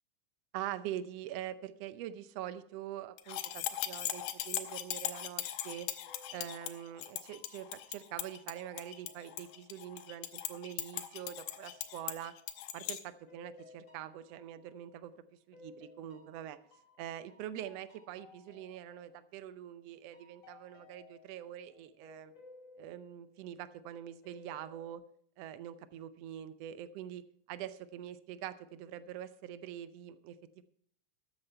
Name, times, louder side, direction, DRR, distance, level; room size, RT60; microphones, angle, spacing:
voice 1, 0.5-5.9 6.3-12.3 12.7-15.1 15.5-16.6 17.0-22.3 22.8-25.0 25.4-27.2 27.5-30.6, right 11 dB, 75° right, 13 dB, 1.5 m, -44 dB
sound 1, 3.2-13.0, left 12 dB, 85° left, 2.4 m, -39 dB
sound 2, 5.6-5.7 6.1-10.4 10.9-15.1 15.5-19.8 20.1-23.9 24.2-24.9, left 3 dB, 55° left, 4.1 m, -60 dB
13.0 x 9.5 x 4.5 m, 0.63 s
omnidirectional pair, 3.6 m